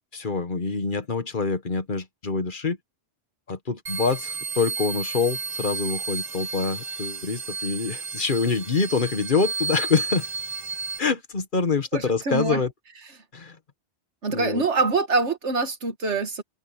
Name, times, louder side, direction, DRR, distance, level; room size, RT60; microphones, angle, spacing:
voice 1, 0.1-2.8 3.5-10.3 11.0-12.7 13.3-13.6 14.3-14.6, left 4 dB, 45° left, 1.4 m, -26 dB
sound 1, 3.9-11.0, right 4 dB, 40° right, 1.1 m, -32 dB
voice 2, 11.9-12.6 14.2-16.4, right 3 dB, 85° right, 2.0 m, -24 dB
omnidirectional pair, 1.2 m